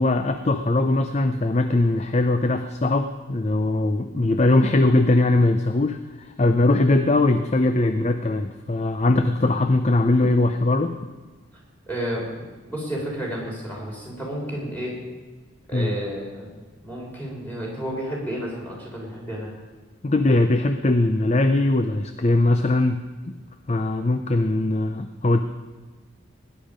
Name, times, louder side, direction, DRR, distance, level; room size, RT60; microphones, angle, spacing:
voice 1, 0.0-10.9 15.7-16.0 20.0-23.0 23.7-25.4, left 2 dB, 30° left, 8 dB, 0.5 m, -20 dB
voice 2, 11.9-15.0 15.7-16.5 16.8-19.5, equal, 10° left, -4 dB, 4.0 m, -31 dB
17.0 x 10.5 x 5.1 m, 1.3 s
head